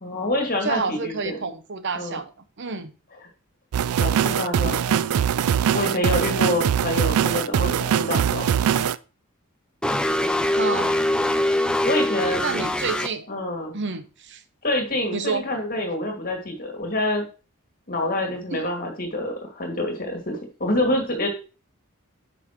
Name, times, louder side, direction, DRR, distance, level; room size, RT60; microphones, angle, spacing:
voice 1, 0.0-1.4 1.9-2.2 4.0-5.1 5.7-8.8 11.8-12.6 13.3-13.7 14.6-17.2 17.9-21.3, left 1 dB, 45° left, 2.3 m, -27 dB
voice 2, 0.6-2.9 10.5-11.0 12.4-13.3 13.7-14.4 15.1-15.5 18.5-18.6, right 4 dB, 55° right, 0.9 m, -29 dB
sound 1, 3.7-9.0, right 8 dB, 85° right, 0.3 m, -22 dB
sound 2, 9.8-13.1, left 1 dB, 5° left, 0.4 m, -23 dB
10.0 x 5.5 x 3.1 m
head